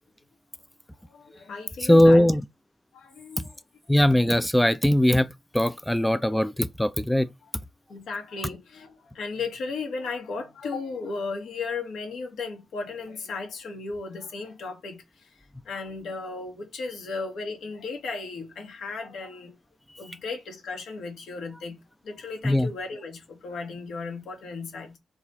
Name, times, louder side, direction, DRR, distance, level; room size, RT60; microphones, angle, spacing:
voice 1, 1.1-2.3 2.9-3.5 7.9-15.0 15.6-19.5 20.0-21.8 22.0-25.0, left 4 dB, 80° left, 2.3 m, -35 dB
voice 2, 1.8-2.4 3.9-7.3 22.4-22.7, left 1 dB, 5° left, 0.3 m, -20 dB
4.8 x 3.7 x 5.7 m
wide cardioid pair, 150°, 0 cm